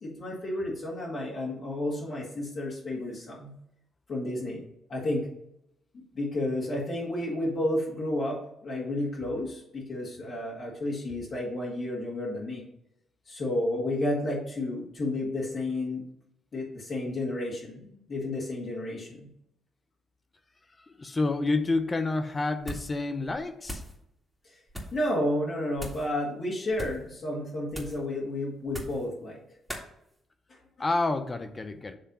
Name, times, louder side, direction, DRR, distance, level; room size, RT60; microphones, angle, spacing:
voice 1, 0.0-3.5 4.1-4.6 4.9-5.3 6.1-12.6 13.3-16.0 16.5-19.3 24.4-24.6 24.9-29.4, left 1 dB, 50° left, -5 dB, 2.1 m, -31 dB
voice 2, 21.0-23.8 30.8-31.9, left 3 dB, 30° left, 8 dB, 0.8 m, -28 dB
sound 1, 22.6-23.0 23.3-24.0 24.7-25.0 25.8-26.1 26.7-27.1 27.7-28.1 28.7-29.1 29.7-29.9, equal, 5° left, 2.0 m, -40 dB
7.6 x 3.3 x 5.6 m, 0.76 s
supercardioid pair, 60°, 0 cm